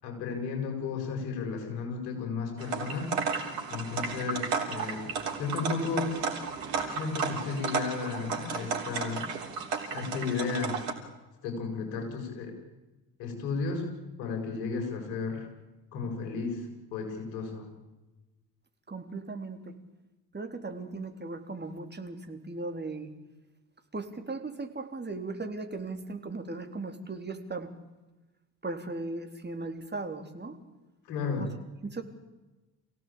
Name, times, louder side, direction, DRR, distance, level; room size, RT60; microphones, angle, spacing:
voice 1, 0.0-3.2 3.7-5.1 5.4-6.1 6.9-9.3 9.9-10.8 11.4-12.5 13.2-13.9 14.2-15.5 15.9-17.7 31.1-31.5, left 4 dB, 75° left, 3 dB, 7.0 m, -33 dB
sound 1, 2.6-10.9, right 5 dB, 80° right, 3.4 m, -33 dB
voice 2, 18.9-19.7 20.3-23.1 23.9-27.7 28.6-30.6 31.4-31.5 31.8-32.0, right 3 dB, 20° right, 5 dB, 3.8 m, -37 dB
27.5 x 17.0 x 8.8 m, 1.1 s
hypercardioid pair, 55°, 48 cm